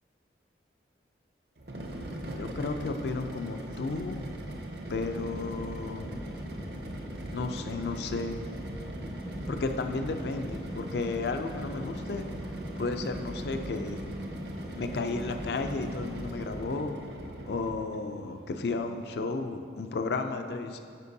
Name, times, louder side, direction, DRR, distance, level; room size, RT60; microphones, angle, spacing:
sound 1, 1.6-18.0, right 1 dB, 65° right, 0.7 m, -41 dB
voice 1, 2.4-4.2 4.9-6.1 7.3-8.4 9.5-12.3 12.8-14.0 14.8-17.0 17.5-20.8, left 3 dB, 65° left, 7 dB, 0.4 m, -33 dB
sound 2, 4.9-16.6, right 1 dB, 10° right, 0.4 m, -43 dB
Singing, 8.1-19.3, equal, 85° right, 1.3 m, -47 dB
9.7 x 5.1 x 2.7 m, 2.4 s
head